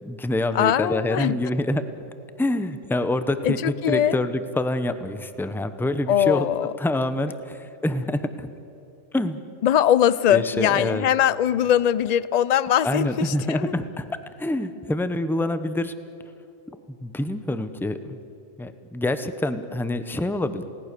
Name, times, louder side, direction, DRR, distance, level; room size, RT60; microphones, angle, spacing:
voice 1, 0.0-1.8 2.4-6.5 6.8-8.5 9.1-9.4 10.3-11.1 12.8-15.9 17.0-18.2 18.6-20.6, left 1 dB, ahead, 10 dB, 0.7 m, -26 dB
voice 2, 0.5-1.4 3.4-4.2 6.1-6.7 9.6-13.7, left 10 dB, 50° left, 18 dB, 0.5 m, -21 dB
28.5 x 18.5 x 6.8 m, 2.9 s
omnidirectional pair, 1.3 m